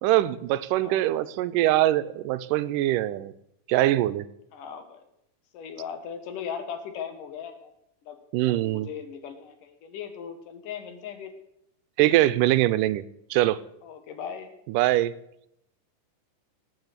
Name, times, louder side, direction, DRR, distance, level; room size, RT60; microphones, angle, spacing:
voice 1, 0.0-3.3 3.7-4.3 8.3-8.9 12.0-13.0 13.3-13.6 14.7-15.1, right 15 dB, 85° right, 14 dB, 2.2 m, -23 dB
voice 2, 4.5-5.0 5.5-7.7 8.0-8.2 8.4-11.3 13.8-14.5, left 7 dB, 80° left, 8 dB, 3.1 m, -38 dB
17.5 x 6.3 x 8.1 m, 0.78 s
omnidirectional pair, 3.7 m